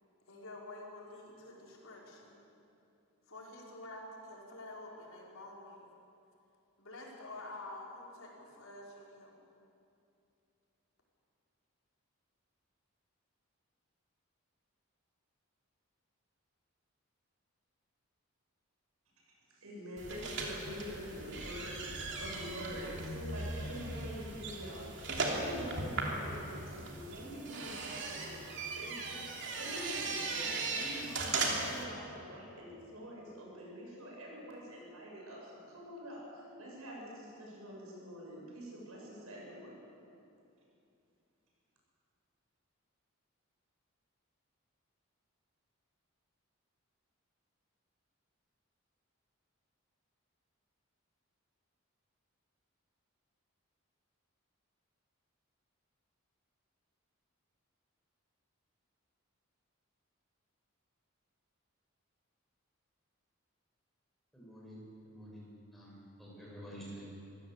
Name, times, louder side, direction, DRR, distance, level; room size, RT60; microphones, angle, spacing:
voice 1, 0.3-2.4 3.3-5.8 6.8-9.4, left 2 dB, 75° left, -3 dB, 4.7 m, -48 dB
voice 2, 19.5-39.8, equal, 80° right, -2 dB, 7.3 m, -46 dB
sound 1, 20.0-31.8, right 3 dB, 55° right, 3.0 m, -38 dB
voice 3, 64.3-67.1, equal, ahead, -6 dB, 6.9 m, -49 dB
24.0 x 15.5 x 8.1 m, 2.6 s
head